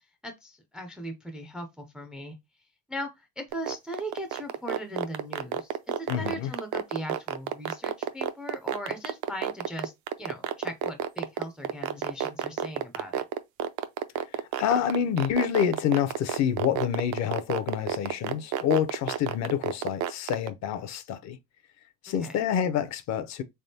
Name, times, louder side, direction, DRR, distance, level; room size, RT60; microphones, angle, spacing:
voice 1, 0.2-2.4 2.9-9.9 10.2-13.2 22.1-22.4, equal, 5° right, 0.3 m, -39 dB
sound 1, 3.5-20.5, right 12 dB, 65° right, 0.5 m, -29 dB
voice 2, 6.1-6.5 14.3-21.4 22.0-23.4, left 9 dB, 55° left, 0.5 m, -27 dB
3.6 x 3.4 x 2.6 m
cardioid pair, 180°, 33 cm